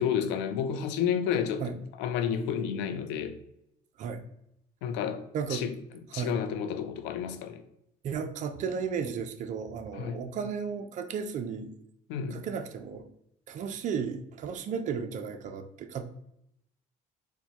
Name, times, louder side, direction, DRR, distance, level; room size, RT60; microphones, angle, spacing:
voice 1, 0.0-3.4 4.8-5.7 6.1-7.6 9.9-10.2 12.1-12.4, left 8 dB, 85° left, 8 dB, 0.5 m, -31 dB
voice 2, 5.3-5.6 6.1-6.3 8.0-11.7 12.3-13.1 13.5-16.0, right 6 dB, 45° right, 7 dB, 0.4 m, -34 dB
4.3 x 2.2 x 2.9 m, 0.77 s
cardioid pair, 100°, 18 cm